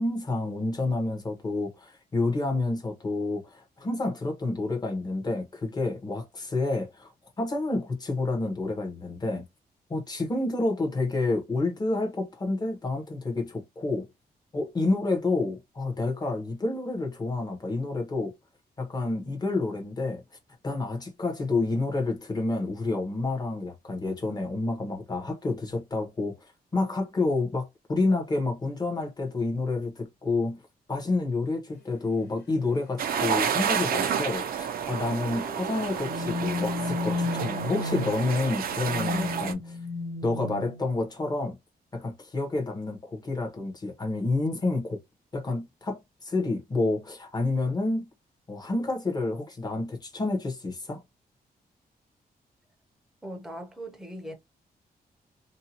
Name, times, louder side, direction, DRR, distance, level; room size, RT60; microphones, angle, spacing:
voice 1, 0.0-7.1 7.4-9.4 9.9-14.1 14.5-18.3 18.8-20.2 20.6-26.4 26.7-30.6 30.9-39.8 40.2-41.6 41.9-45.0 45.3-48.1 48.5-51.0, left 2 dB, 25° left, 0.9 m, -29 dB
sound 1, 31.9-32.0 32.9-33.3 33.5-33.6 34.0-34.3 35.3-41.0, left 3 dB, 85° left, 1.6 m, -34 dB
sound 2, 33.0-39.5, right 7 dB, 65° right, 0.4 m, -30 dB
voice 2, 53.2-54.3, equal, ahead, 0.7 m, -39 dB
2.7 x 2.2 x 2.8 m
wide cardioid pair, 165°, 16 cm